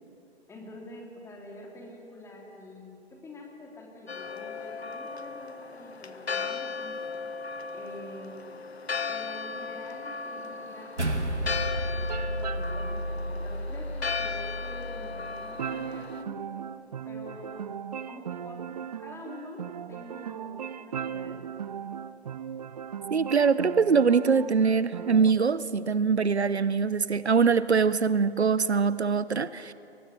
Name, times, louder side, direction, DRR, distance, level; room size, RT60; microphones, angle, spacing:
voice 1, 0.5-7.2 7.7-8.4 9.1-16.5 17.0-21.7, left 1 dB, 10° left, 0 dB, 3.3 m, -46 dB
Church bell, 4.1-16.2, left 5 dB, 65° left, 1.3 m, -36 dB
sound 1, 11.0-15.5, equal, 90° right, 1.9 m, -32 dB
sound 2, 12.1-12.9 15.6-25.3, right 8 dB, 35° right, 0.5 m, -38 dB
voice 2, 23.1-29.7, right 5 dB, 70° right, 16 dB, 0.8 m, -23 dB
29.5 x 23.0 x 6.8 m, 2.8 s
figure-of-eight pair, 125°, 34 cm